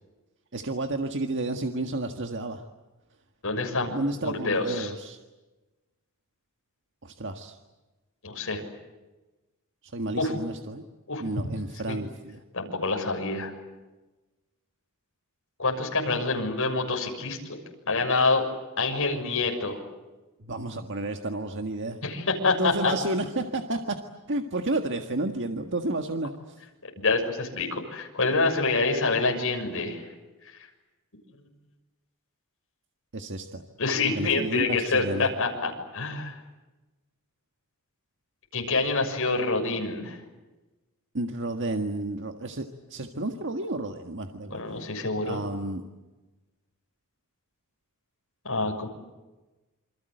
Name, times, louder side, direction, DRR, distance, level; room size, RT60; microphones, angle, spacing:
voice 1, 0.5-2.6 3.9-5.2 7.0-7.6 9.8-10.9 11.2-12.4 20.4-22.0 22.6-24.0 24.3-26.6 33.1-33.6 34.0-35.3 41.1-44.9 45.2-45.8, right 2 dB, 55° right, 5 dB, 1.7 m, -31 dB
voice 2, 3.4-3.9 4.2-4.9 8.2-8.6 10.2-10.3 11.1-11.2 11.9-12.0 12.5-13.5 15.6-17.4 17.9-18.4 18.8-19.8 22.0-22.9 27.0-30.0 33.8-36.4 38.5-40.2 44.5-45.4 48.4-48.9, left 3 dB, 65° left, 2 dB, 6.7 m, -26 dB
28.0 x 25.5 x 7.9 m, 1.1 s
head